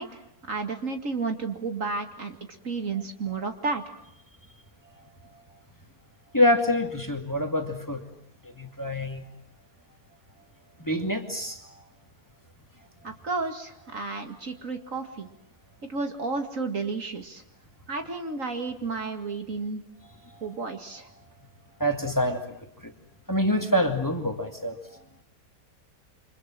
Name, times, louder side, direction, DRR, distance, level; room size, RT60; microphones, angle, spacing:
voice 1, 0.0-2.4 2.6-3.8 13.0-15.3 15.9-17.4 17.9-19.8 20.4-21.1, right 4 dB, 55° right, 6 dB, 2.5 m, -32 dB
voice 2, 6.3-8.0 8.4-9.2 10.8-11.6 20.3-20.4 20.7-20.8 21.8-22.4 22.8-22.9 23.3-24.8, left 1 dB, 10° left, 5 dB, 2.4 m, -26 dB
29.0 x 25.5 x 7.6 m, 0.72 s
omnidirectional pair, 1.7 m